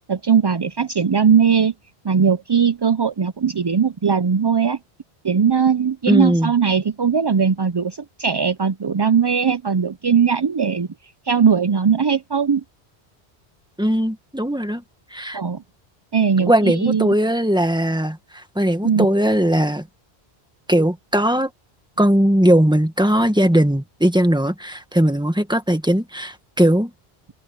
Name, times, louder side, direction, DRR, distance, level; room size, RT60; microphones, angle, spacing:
voice 1, 0.1-1.7 2.0-4.8 5.2-10.9 11.3-12.6 15.3-15.6 16.1-17.1 18.8-19.1, right 6 dB, 40° right, 0.3 m, -19 dB
voice 2, 6.1-6.5 13.8-14.8 15.1-15.4 16.4-19.9 20.7-21.5 22.0-26.9, right 1 dB, 5° right, 1.5 m, -19 dB
open air
omnidirectional pair, 1.1 m